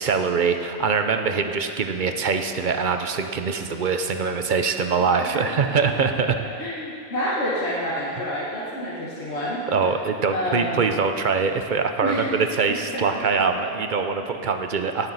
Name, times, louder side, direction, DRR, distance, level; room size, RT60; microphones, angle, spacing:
voice 1, 0.0-6.4 9.7-15.1, right 5 dB, 55° right, 7 dB, 0.7 m, -23 dB
voice 2, 6.4-9.9 10.3-10.8 12.0-12.3 12.7-13.2 13.6-13.7 14.0-14.3, equal, 80° left, -7 dB, 1.8 m, -29 dB
17.5 x 8.9 x 4.1 m, 2.4 s
omnidirectional pair, 1.1 m